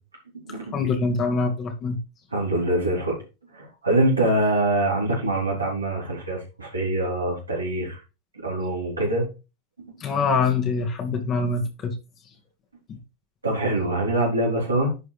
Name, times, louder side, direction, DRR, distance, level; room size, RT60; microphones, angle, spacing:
voice 1, 0.7-2.0 10.0-12.0 12.9-13.0, left 4 dB, 35° left, 1.9 m, -24 dB
voice 2, 2.3-3.2 3.5-8.0 8.4-9.3 9.9-10.0 13.4-14.9, right 1 dB, 85° right, 3.7 m, -24 dB
10.5 x 4.9 x 3.3 m
figure-of-eight pair, 85°, 0 cm